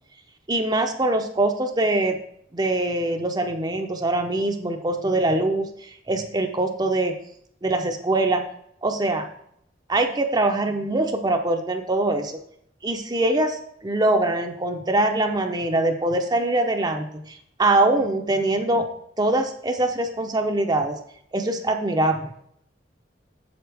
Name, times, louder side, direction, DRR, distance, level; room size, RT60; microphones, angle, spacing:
voice 1, 0.5-2.2 2.5-7.1 7.6-8.4 8.8-9.3 9.9-12.4 12.8-18.9 19.2-21.0 21.3-22.3, right 2 dB, 20° right, 4 dB, 0.6 m, -23 dB
7.9 x 6.9 x 3.4 m, 0.70 s
head